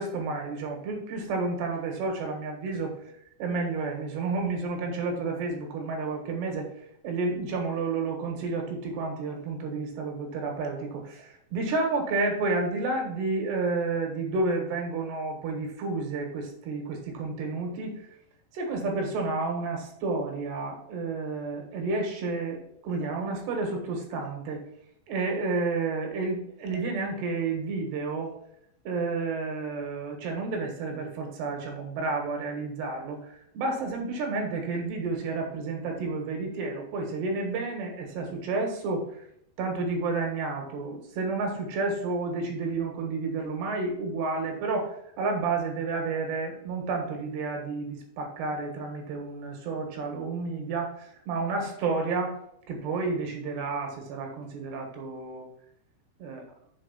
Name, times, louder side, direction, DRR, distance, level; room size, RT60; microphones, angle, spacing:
voice 1, 0.0-2.9 3.4-6.7 7.0-18.0 18.5-24.6 25.1-28.3 28.8-33.3 33.5-39.0 39.6-52.4 52.7-55.5 56.2-56.4, right 3 dB, 70° right, 2 dB, 3.4 m, -30 dB
7.2 x 4.5 x 5.8 m, 0.72 s
omnidirectional pair, 5.2 m